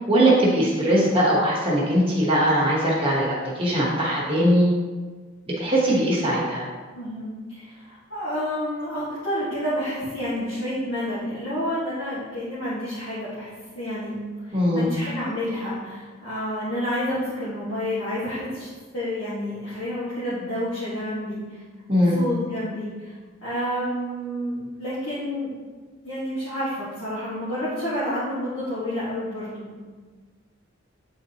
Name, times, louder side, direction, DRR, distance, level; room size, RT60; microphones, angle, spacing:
voice 1, 0.1-4.7 5.6-6.6 14.5-14.9 21.9-22.1, equal, 25° right, -5 dB, 1.0 m, -20 dB
voice 2, 6.9-14.2 14.5-21.6 21.9-25.5 26.0-29.8, equal, 70° left, -11 dB, 1.5 m, -29 dB
8.6 x 3.9 x 2.8 m, 1.4 s
head